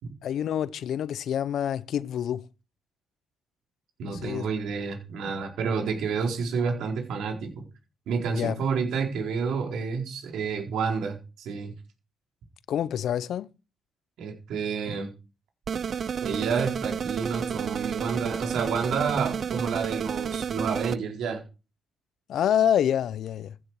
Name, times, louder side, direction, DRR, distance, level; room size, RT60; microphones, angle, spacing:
voice 1, 0.2-2.5 4.0-4.5 8.3-8.6 12.7-13.5 22.3-23.6, left 10 dB, 70° left, 0.8 m, -27 dB
voice 2, 4.0-7.5 8.1-11.7 14.2-15.1 16.2-21.4, right 5 dB, 80° right, 4.4 m, -29 dB
sound 1, 15.7-21.0, right 7 dB, 50° right, 0.6 m, -31 dB
15.5 x 9.7 x 4.9 m
cardioid pair, 90°, 0 cm